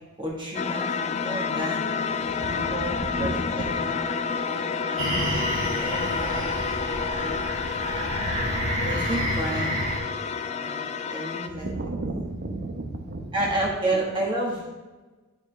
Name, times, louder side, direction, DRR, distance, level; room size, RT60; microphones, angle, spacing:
voice 1, 0.2-1.9 2.4-5.0 5.7-6.8 7.1-7.5 8.8-9.8 10.6-10.8 11.1-11.7 13.3-14.7, right 1 dB, 25° right, -4 dB, 1.5 m, -31 dB
sound 1, 0.5-11.5, left 5 dB, 30° left, 0.4 m, -29 dB
voice 2, 2.4-3.4 3.7-3.8 11.6-13.5, right 2 dB, 55° right, 4 dB, 1.0 m, -33 dB
sound 2, 5.0-10.0, right 1 dB, 75° right, 2.0 m, -29 dB
11.5 x 4.8 x 3.4 m, 1.2 s
head